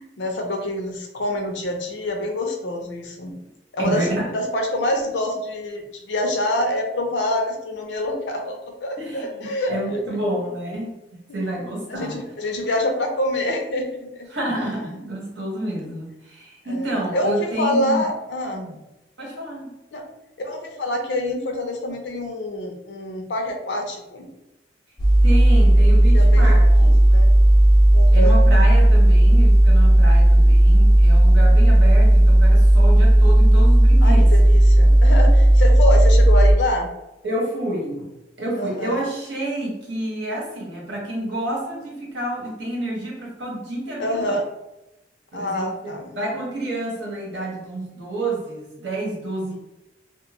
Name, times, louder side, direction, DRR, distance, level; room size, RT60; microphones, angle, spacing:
voice 1, 0.0-3.3 3.7-4.1 4.3-10.2 11.3-11.4 11.9-14.3 16.7-18.7 19.9-20.0 20.4-24.3 26.1-26.5 26.8-26.9 27.1-27.3 27.9-28.4 34.0-36.9 38.6-39.0 44.0-44.4 45.3-46.1, left 1 dB, 80° left, 3 dB, 0.5 m, -26 dB
voice 2, 3.8-4.3 9.0-12.2 14.3-18.0 18.5-18.8 19.2-19.7 25.2-27.0 28.1-34.3 37.2-38.1 38.4-44.4 45.3-49.5, right 1 dB, 80° right, -2 dB, 1.0 m, -29 dB
sound 1, 25.0-36.5, right 1 dB, 25° left, 0.5 m, -13 dB
2.5 x 2.2 x 2.9 m, 0.93 s
head